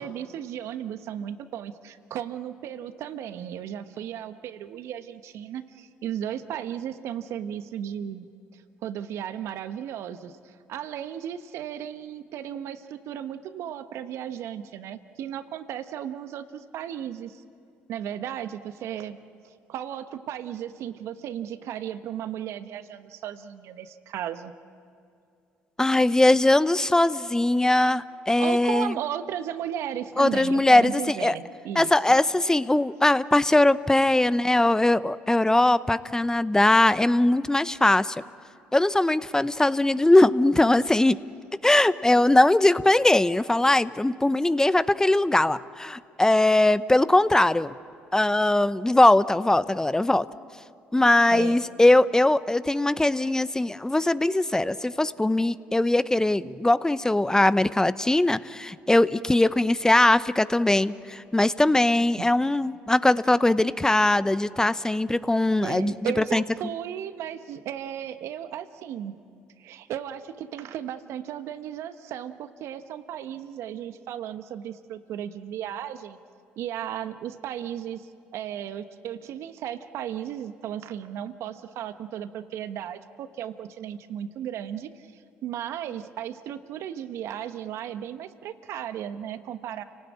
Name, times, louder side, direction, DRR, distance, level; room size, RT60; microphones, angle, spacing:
voice 1, 0.0-8.3 8.5-17.4 17.9-19.2 19.4-24.5 28.4-31.9 51.3-51.6 62.2-62.3 65.6-69.1 69.6-76.2 76.6-89.8, right 10 dB, 65° right, 11 dB, 1.1 m, -35 dB
voice 2, 25.8-28.9 30.2-31.3 31.7-38.2 38.7-41.2 41.6-47.7 48.1-50.3 50.9-65.9 66.3-66.4, left 2 dB, 10° left, 15 dB, 0.7 m, -21 dB
29.5 x 18.5 x 8.6 m, 2.5 s
hypercardioid pair, 55°, 5 cm